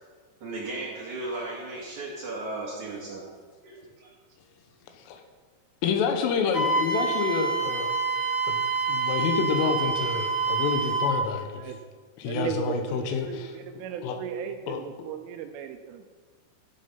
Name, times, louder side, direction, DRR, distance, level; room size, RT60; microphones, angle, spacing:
voice 1, 0.4-3.2 3.6-4.1, right 2 dB, 55° right, -5 dB, 2.3 m, -35 dB
voice 2, 5.8-7.9 8.5-8.6 8.9-11.6 12.2-13.5 14.0-14.2 14.7-14.8, left 6 dB, 80° left, 5 dB, 3.4 m, -28 dB
Wind instrument woodwind instrument, 6.5-11.2, right 4 dB, 40° left, 1.7 m, -27 dB
voice 3, 12.2-16.1, right 9 dB, 80° right, 7 dB, 3.0 m, -36 dB
13.0 x 8.1 x 5.4 m, 1.5 s
omnidirectional pair, 6.0 m